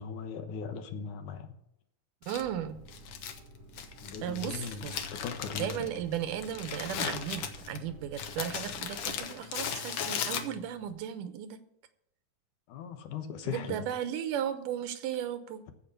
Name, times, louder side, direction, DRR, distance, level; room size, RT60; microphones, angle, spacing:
voice 1, 0.0-1.5 4.0-5.9 12.7-13.8, left 6 dB, 75° left, 2.6 m, -39 dB
Crumpling crinkling, 2.2-10.9, left 7 dB, 60° left, 1.6 m, -38 dB
sound 1, 2.3-9.3, right 2 dB, 30° right, 1.6 m, -52 dB
voice 2, 2.3-2.8 4.2-4.9 5.6-11.6 13.5-15.7, right 10 dB, 90° right, 2.6 m, -35 dB
15.0 x 5.3 x 6.7 m
omnidirectional pair, 3.6 m